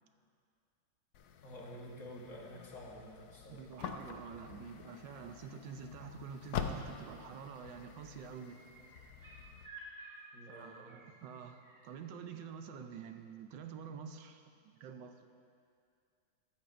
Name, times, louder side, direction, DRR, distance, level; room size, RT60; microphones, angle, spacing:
sound 1, 1.1-9.7, left 7 dB, 70° left, 1.0 m, -46 dB
voice 1, 1.4-3.7 10.3-11.0, equal, 45° left, -2 dB, 1.6 m, -50 dB
voice 2, 3.5-8.7 10.5-15.2, right 6 dB, 85° right, 7 dB, 1.3 m, -48 dB
sound 2, 7.8-11.8 13.5-13.6, right 3 dB, 45° right, 2.9 m, -55 dB
13.5 x 13.5 x 2.6 m, 2.3 s
omnidirectional pair, 2.0 m